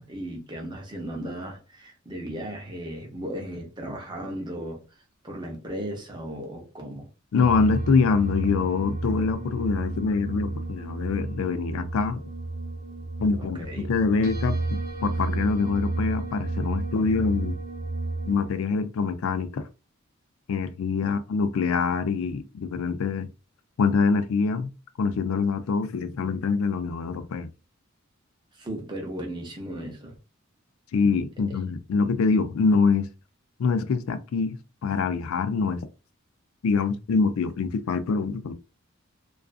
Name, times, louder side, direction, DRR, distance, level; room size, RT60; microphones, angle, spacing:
voice 1, 0.0-4.8 5.2-7.1 13.4-13.9 21.0-21.1 28.6-30.1 31.5-31.6, right 1 dB, 20° right, 0.7 m, -36 dB
voice 2, 7.3-12.2 13.2-14.6 15.0-17.6 18.3-19.7 20.5-23.3 23.8-24.7 25.0-27.5 30.9-33.1 33.6-35.8 36.6-38.5, left 4 dB, 80° left, 0.4 m, -25 dB
sound 1, 7.4-18.5, right 2 dB, 75° right, 0.8 m, -32 dB
2.4 x 2.4 x 2.3 m
head